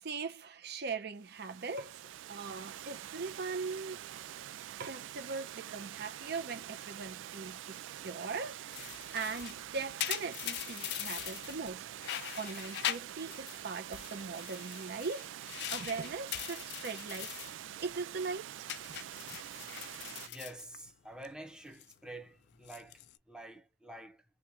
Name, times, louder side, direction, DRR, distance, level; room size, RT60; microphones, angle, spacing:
voice 1, 0.0-2.0 2.3-4.0 4.8-7.6 8.0-17.3 17.8-18.5 18.9-19.4, right 4 dB, 60° right, 0.7 m, -40 dB
Water, 1.2-20.3, right 11 dB, 85° right, 0.3 m, -46 dB
sound 1, 8.7-11.7 12.0-13.6 13.9-17.6 17.9-18.3 18.7-21.3 21.6-21.9 22.5-23.2, left 13 dB, 65° left, 0.3 m, -41 dB
voice 2, 20.2-24.2, right 1 dB, 5° right, 0.8 m, -48 dB
3.0 x 2.4 x 3.2 m
head